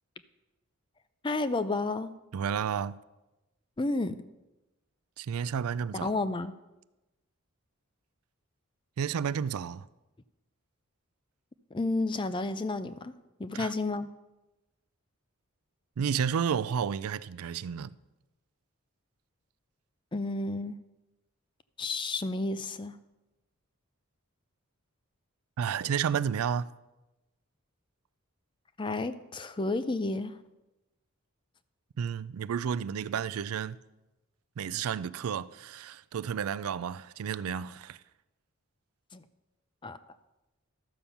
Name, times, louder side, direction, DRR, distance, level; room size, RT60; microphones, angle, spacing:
voice 1, 1.2-2.1 3.8-4.2 6.0-6.5 11.7-13.1 13.4-14.1 20.1-20.8 21.8-22.9 28.8-30.3 39.1-39.2 39.8-40.0, left 2 dB, 20° left, 0.4 m, -31 dB
voice 2, 2.3-3.0 5.2-6.1 9.0-9.9 13.5-13.7 16.0-17.9 25.6-26.7 32.0-33.8 34.6-38.0, right 7 dB, 85° right, 0.4 m, -31 dB
13.0 x 7.0 x 5.8 m
head